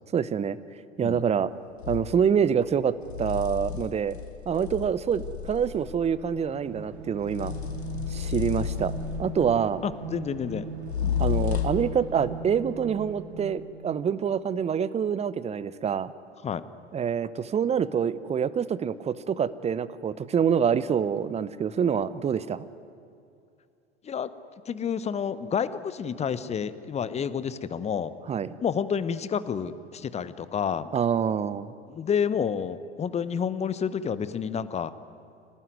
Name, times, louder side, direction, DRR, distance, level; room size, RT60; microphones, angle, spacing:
voice 1, 0.1-0.6 1.0-1.5 1.9-4.2 4.5-7.5 8.1-8.9 9.2-9.8 11.2-16.1 16.9-22.7 28.3-28.5 30.9-31.7, right 7 dB, 20° right, 17 dB, 0.8 m, -26 dB
sound 1, 1.8-2.1 3.0-6.0 7.2-9.5 10.8-11.9, left 10 dB, 70° left, 2.1 m, -32 dB
sound 2, 6.2-13.9, right 3 dB, 65° right, 2.6 m, -39 dB
voice 2, 9.8-10.7 11.0-11.2 16.4-16.6 24.0-24.3 24.7-28.1 28.6-30.9 31.9-34.9, left 7 dB, 20° left, 15 dB, 1.0 m, -29 dB
25.5 x 18.5 x 9.5 m, 2.5 s
figure-of-eight pair, 80°, 34 cm